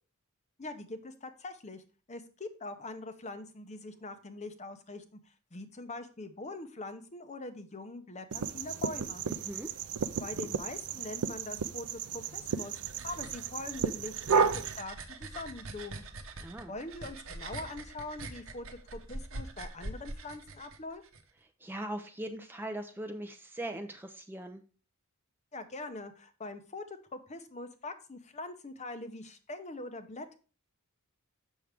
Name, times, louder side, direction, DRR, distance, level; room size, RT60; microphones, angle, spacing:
voice 1, 0.6-1.8 2.1-5.2 5.5-9.2 10.2-12.8 13.0-16.0 16.7-18.7 18.9-21.0 25.5-30.4, left 2 dB, 30° left, 9 dB, 0.7 m, -43 dB
sound 1, 8.3-14.8, right 6 dB, 80° right, 0.5 m, -33 dB
voice 2, 9.3-9.7 16.4-16.7 21.6-24.6, right 1 dB, 10° right, 5 dB, 0.5 m, -40 dB
sound 2, 12.2-21.2, right 2 dB, 65° right, 0.9 m, -44 dB
7.2 x 6.2 x 3.4 m, 0.36 s
head